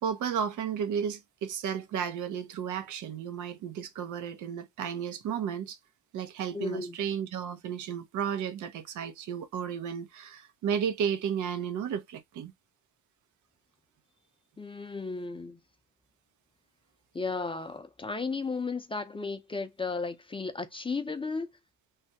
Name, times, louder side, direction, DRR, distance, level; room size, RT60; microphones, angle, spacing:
voice 1, 0.0-5.8 6.1-12.5, right 8 dB, 75° right, 0.7 m, -33 dB
voice 2, 6.5-7.0 14.6-15.6 17.1-21.5, left 4 dB, 15° left, 0.5 m, -34 dB
3.3 x 2.2 x 2.7 m
cardioid pair, 90°, 30 cm